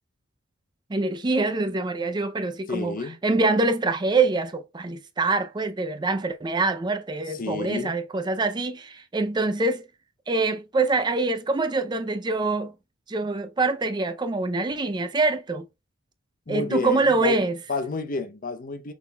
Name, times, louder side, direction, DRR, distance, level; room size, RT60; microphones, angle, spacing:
voice 1, 0.9-2.9 3.2-9.8 10.3-12.7 13.1-15.7 16.5-17.6, right 3 dB, 20° right, 0.4 m, -25 dB
voice 2, 2.7-3.2 7.3-7.9 16.5-17.4 17.7-18.9, left 3 dB, 40° left, 0.6 m, -30 dB
5.9 x 3.7 x 2.2 m
head